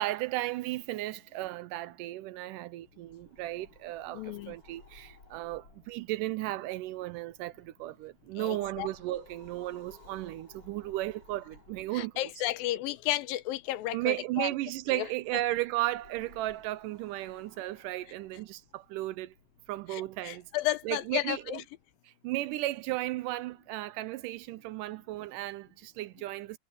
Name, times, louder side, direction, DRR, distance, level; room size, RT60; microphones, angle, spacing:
voice 1, 0.0-12.3 13.9-19.3 19.7-20.5 20.8-21.6 22.0-26.6, right 17 dB, 80° right, 2.1 m, -35 dB
sound 1, 2.9-21.6, left 3 dB, 40° left, 6.5 m, -60 dB
voice 2, 4.1-4.5 8.4-8.9 9.1-9.2 11.9-14.5 14.9-15.1 19.9-21.6, left 15 dB, 85° left, 2.6 m, -33 dB
omnidirectional pair, 4.0 m